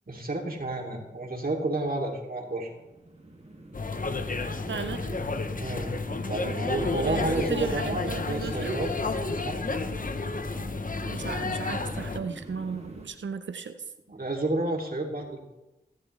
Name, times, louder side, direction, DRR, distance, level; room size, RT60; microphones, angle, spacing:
voice 1, 0.1-2.7 5.6-5.9 6.3-8.9 9.4-9.6 14.1-15.6, right 2 dB, 50° right, -1 dB, 2.9 m, -31 dB
sound 1, 2.5-13.1, right 1 dB, 35° right, 2.3 m, -44 dB
sound 2, 3.7-12.2, left 3 dB, 45° left, 0.9 m, -31 dB
voice 2, 4.7-5.2 7.0-8.8 11.0-13.8, right 5 dB, 85° right, 9 dB, 0.7 m, -35 dB
16.0 x 10.5 x 3.3 m, 1.0 s
cardioid pair, 45°, 19 cm